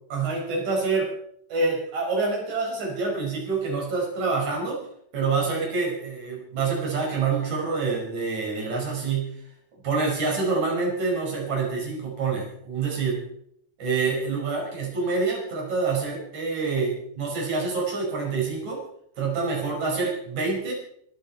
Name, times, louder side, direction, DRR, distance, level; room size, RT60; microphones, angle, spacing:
voice 1, 0.1-1.1 1.5-4.9 5.1-9.4 9.8-13.2 13.8-18.9 19.2-20.7, right 4 dB, 45° right, -1 dB, 6.6 m, -26 dB
25.5 x 11.5 x 4.4 m, 0.69 s
omnidirectional pair, 4.8 m